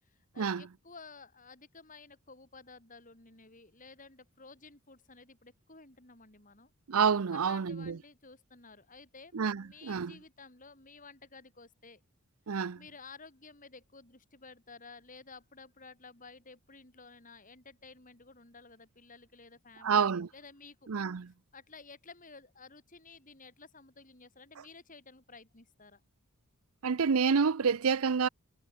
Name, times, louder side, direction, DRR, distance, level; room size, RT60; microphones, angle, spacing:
voice 1, 0.0-6.7 7.3-12.0 12.7-20.9 21.5-26.0, left 4 dB, 35° left, 4.7 m, -53 dB
voice 2, 6.9-8.0 9.3-10.2 12.5-12.8 19.8-20.3 20.9-21.3 26.8-28.3, right 6 dB, 70° right, 0.6 m, -28 dB
head